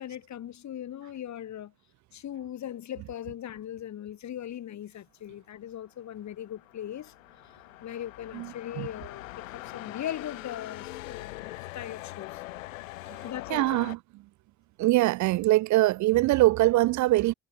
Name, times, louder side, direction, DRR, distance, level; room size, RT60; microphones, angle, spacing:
voice 1, 0.0-1.7 2.1-7.1 7.8-9.3 9.5-12.4 13.2-13.8, left 11 dB, 45° left, 1.5 m, -39 dB
sound 1, 6.0-14.0, left 19 dB, 85° left, 0.6 m, -43 dB
voice 2, 8.3-8.9 13.5-14.0 14.8-17.3, right 18 dB, 50° right, 0.5 m, -23 dB
hypercardioid pair, 55°, 39 cm